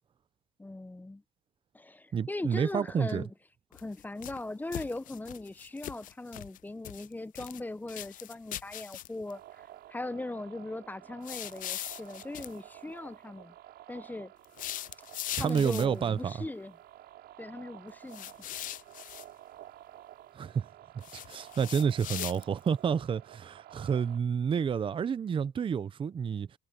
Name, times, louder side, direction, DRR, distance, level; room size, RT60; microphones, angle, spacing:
voice 1, 0.6-1.2 1.7-3.3 3.7-9.6 9.9-13.5 13.9-14.3 15.3-16.7 17.4-18.3, left 2 dB, 10° left, 0.8 m, -39 dB
voice 2, 2.1-3.2 15.4-16.3 20.3-20.7 20.9-26.5, right 7 dB, 30° right, 0.6 m, -29 dB
sound 1, 3.7-4.4 4.7-6.6 6.8-7.6 7.9-9.3 11.2-12.5 14.4-16.0 18.1-19.3 21.0-22.7, left 13 dB, 55° left, 0.4 m, -40 dB
sound 2, 9.3-24.2, right 13 dB, 75° right, 5.5 m, -52 dB
cardioid pair, 110°, 17 cm